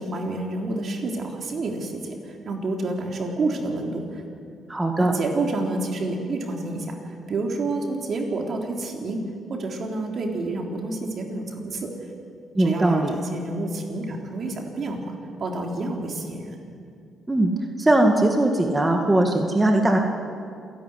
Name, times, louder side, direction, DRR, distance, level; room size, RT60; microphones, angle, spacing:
voice 1, 0.0-4.2 5.0-9.2 9.5-11.9 12.6-16.6, right 2 dB, 50° right, 2 dB, 3.5 m, -29 dB
voice 2, 4.7-5.1 12.6-13.1 17.3-17.5 17.8-20.0, right 1 dB, 15° right, 2 dB, 2.0 m, -20 dB
27.5 x 11.5 x 9.7 m, 2.4 s
cardioid pair, 90°, 0 cm